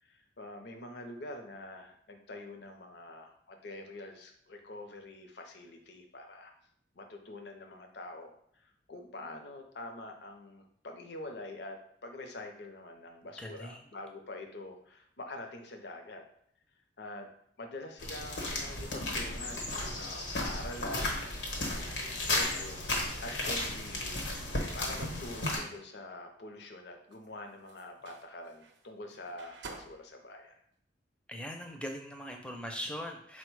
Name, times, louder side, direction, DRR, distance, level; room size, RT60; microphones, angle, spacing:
voice 1, 0.0-6.5 7.0-16.2 17.0-17.3 17.6-21.2 21.5-24.2 24.7-30.6, left 2 dB, 65° left, 4 dB, 0.6 m, -45 dB
voice 2, 13.4-13.8 31.3-33.4, equal, 5° left, 3 dB, 0.4 m, -40 dB
sound 1, 18.0-25.6, left 2 dB, 85° left, 1.0 m, -34 dB
sound 2, 23.8-25.7 27.1-27.2 27.7-28.2 28.6-28.8 29.1-29.9, right 1 dB, 75° right, 0.5 m, -45 dB
4.1 x 2.1 x 4.5 m, 0.66 s
head